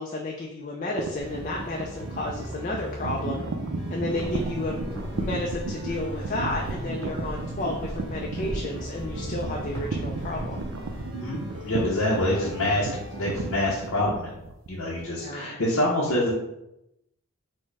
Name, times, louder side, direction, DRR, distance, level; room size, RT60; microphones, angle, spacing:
voice 1, 0.0-3.4 3.9-4.8 5.1-10.6 11.8-12.1 15.1-15.5, left 2 dB, 35° left, 0 dB, 0.4 m, -32 dB
sound 1, 1.0-15.0, right 3 dB, 65° right, 0.4 m, -34 dB
sound 2, 1.2-13.9, equal, 20° right, 0.8 m, -40 dB
voice 2, 4.0-4.3 11.1-14.4 14.7-16.3, left 1 dB, 65° left, -4 dB, 0.7 m, -26 dB
sound 3, 4.1-11.0, equal, 10° left, 1.5 m, -39 dB
4.4 x 2.1 x 4.6 m, 0.87 s
head